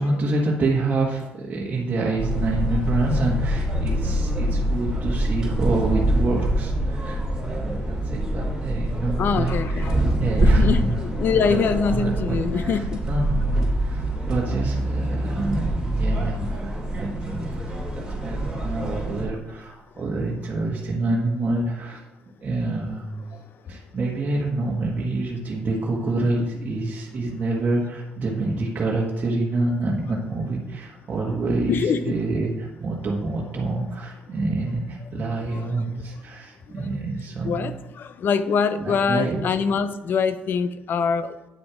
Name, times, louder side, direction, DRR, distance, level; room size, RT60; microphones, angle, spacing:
voice 1, 0.0-9.9 10.2-11.0 11.3-11.6 11.9-17.5 17.9-22.0 22.4-23.3 23.7-37.8 38.8-39.5, right 2 dB, 40° right, -4 dB, 1.6 m, -27 dB
sound 1, 2.2-19.2, right 1 dB, 15° right, 3.1 m, -25 dB
voice 2, 9.2-10.0 10.4-13.0 18.5-18.6 31.7-32.1 35.5-35.6 36.8-36.9 37.4-41.4, left 6 dB, 60° left, 12 dB, 0.7 m, -24 dB
9.2 x 6.1 x 4.9 m, 1.0 s
cardioid pair, 95°, 4 cm